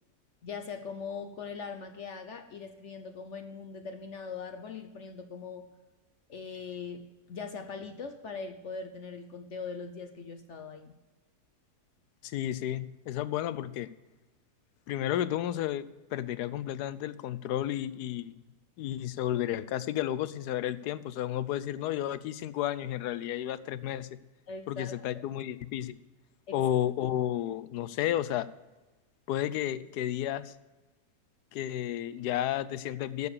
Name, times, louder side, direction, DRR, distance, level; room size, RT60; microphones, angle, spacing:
voice 1, 0.4-5.7 6.3-11.0 24.5-25.2 26.5-26.6, left 5 dB, 55° left, 7 dB, 0.9 m, -41 dB
voice 2, 12.2-13.9 14.9-18.4 18.8-24.1 24.7-26.0 26.5-28.5 29.3-30.5 31.5-33.3, left 12 dB, 85° left, 16 dB, 1.2 m, -32 dB
11.5 x 7.2 x 6.6 m, 1.2 s
omnidirectional pair, 1.7 m